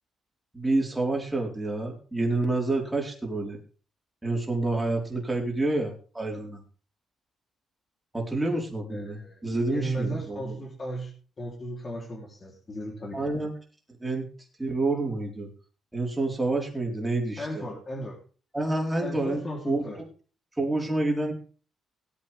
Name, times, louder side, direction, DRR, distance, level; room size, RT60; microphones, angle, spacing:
voice 1, 0.5-3.6 4.2-6.6 8.1-10.5 13.1-13.5 14.0-14.3 14.6-15.5 15.9-17.6 18.5-19.8 20.6-21.3, right 2 dB, 10° right, 0 dB, 4.3 m, -28 dB
voice 2, 8.9-9.4 9.7-11.1 11.4-13.2 17.4-18.2 19.0-20.0, right 1 dB, 30° left, 0 dB, 3.3 m, -35 dB
17.5 x 8.6 x 3.5 m, 0.38 s
cardioid pair, 90°, 0 cm